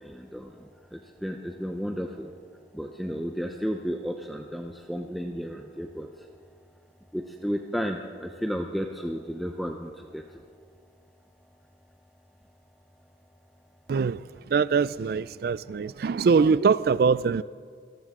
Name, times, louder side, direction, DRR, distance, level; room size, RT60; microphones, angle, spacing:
voice 1, 0.0-2.3 2.7-6.3 7.1-10.4, equal, ahead, 0.5 m, -33 dB
voice 2, 13.9-17.4, right 5 dB, 55° right, 0.3 m, -23 dB
25.0 x 14.0 x 3.7 m
head